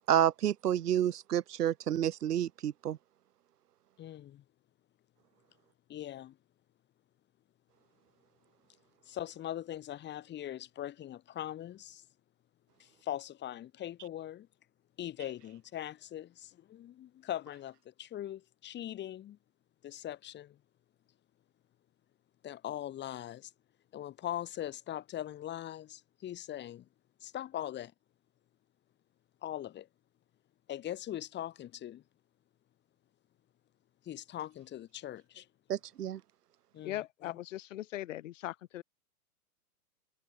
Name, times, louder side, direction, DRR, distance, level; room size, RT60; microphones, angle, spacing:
voice 1, 0.1-3.0 35.7-36.2, right 11 dB, 85° right, 0.7 m, -29 dB
voice 2, 4.0-4.4 5.9-6.4 9.1-12.0 12.8-14.5 15.0-19.4 19.8-20.6 22.4-23.5 23.9-26.9 27.2-27.9 29.4-29.9 30.7-32.0 34.0-35.5 36.7-37.4, left 12 dB, 25° left, 3.8 m, -41 dB
voice 3, 36.8-38.8, left 14 dB, 55° left, 1.9 m, -39 dB
hypercardioid pair, 125°, 46 cm